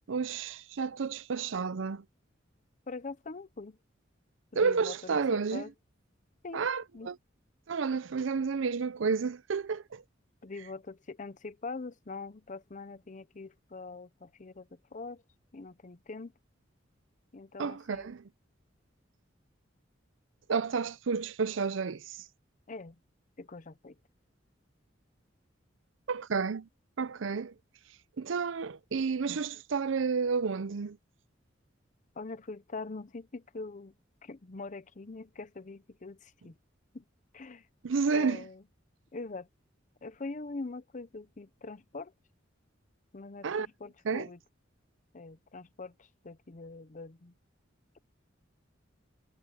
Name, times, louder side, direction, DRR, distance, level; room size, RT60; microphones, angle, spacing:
voice 1, 0.1-2.0 4.6-5.7 6.5-7.2 7.7-10.0 17.6-18.2 20.5-22.3 26.1-26.7 27.0-27.5 28.2-31.0 37.8-38.4 43.4-43.7 44.0-44.3, right 5 dB, 80° right, 0.6 m, -31 dB
voice 2, 2.9-3.8 4.5-5.7 6.4-6.7 6.9-7.1 10.4-15.2 15.5-16.3 17.3-18.1 22.7-23.0 23.4-24.0 32.2-33.9 34.2-36.6 36.9-37.0 37.3-37.6 38.1-38.6 39.1-39.5 40.0-42.1 43.1-44.4 45.1-47.3, left 3 dB, 40° left, 0.7 m, -43 dB
head